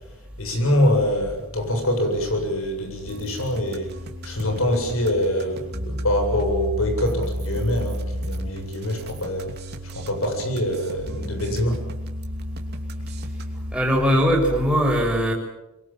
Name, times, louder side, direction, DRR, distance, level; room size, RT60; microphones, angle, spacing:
voice 1, 0.4-3.9 4.2-9.5 9.8-11.8, left 1 dB, 80° left, 5 dB, 7.7 m, -24 dB
sound 1, 3.1-13.7, equal, 50° right, 2.9 m, -32 dB
voice 2, 13.7-15.3, equal, 5° right, -1 dB, 6.1 m, -20 dB
25.5 x 23.0 x 7.5 m, 0.96 s
head